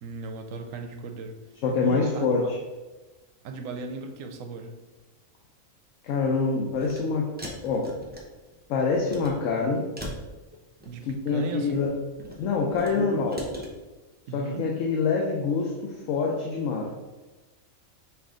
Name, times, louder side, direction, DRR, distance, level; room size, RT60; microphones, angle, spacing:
voice 1, 0.0-1.4 1.8-2.3 3.4-4.7 10.9-11.8 12.9-13.6 14.3-14.7, right 4 dB, 75° right, 6 dB, 0.9 m, -37 dB
voice 2, 1.6-2.6 6.0-7.3 7.6-7.9 8.7-9.9 11.1-11.9 12.4-13.4 14.3-16.9, left 4 dB, 70° left, 0 dB, 0.9 m, -25 dB
sound 1, 6.7-7.0 7.4-8.6 8.9-9.3 10.0-11.1 11.7-12.9 13.3-13.7, equal, 15° right, 0.4 m, -39 dB
5.5 x 2.5 x 3.7 m, 1.2 s
omnidirectional pair, 1.5 m